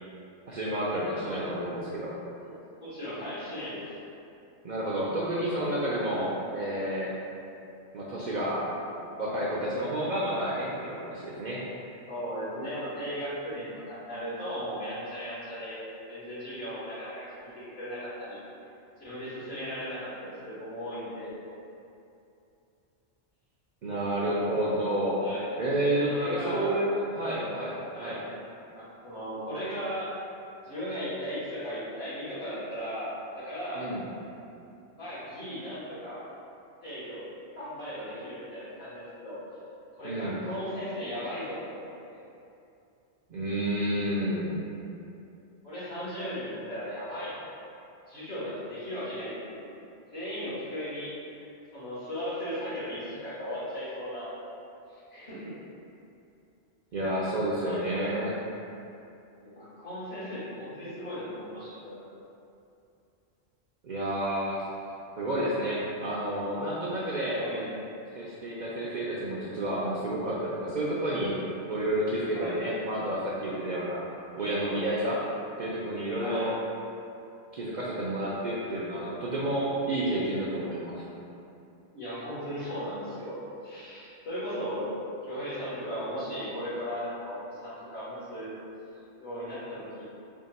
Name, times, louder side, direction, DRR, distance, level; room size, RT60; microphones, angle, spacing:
voice 1, 0.5-2.1 4.6-7.1 7.9-8.7 9.2-11.6 23.8-25.2 25.6-28.2 33.8-34.0 40.0-40.4 43.3-44.6 56.9-58.3 63.8-64.6 65.2-67.5 68.1-71.4 71.7-74.0 74.4-75.2 75.6-76.5 77.5-81.0, right 1 dB, 60° right, -7 dB, 0.5 m, -30 dB
voice 2, 1.1-1.7 2.4-4.0 6.0-6.2 12.1-18.4 19.0-21.5 25.2-25.6 26.1-26.7 27.2-27.5 27.9-28.2 28.7-30.1 30.6-33.9 34.9-36.2 36.8-37.3 37.5-39.4 39.9-42.2 45.6-47.4 48.1-49.7 50.1-54.3 54.9-55.5 57.0-57.1 57.6-58.2 59.4-62.1 67.4-67.8 72.3-72.7 76.2-76.5 81.9-84.9 85.2-88.5 89.2-90.0, equal, 65° left, -11 dB, 1.5 m, -37 dB
3.5 x 2.3 x 4.0 m, 2.7 s
omnidirectional pair, 1.1 m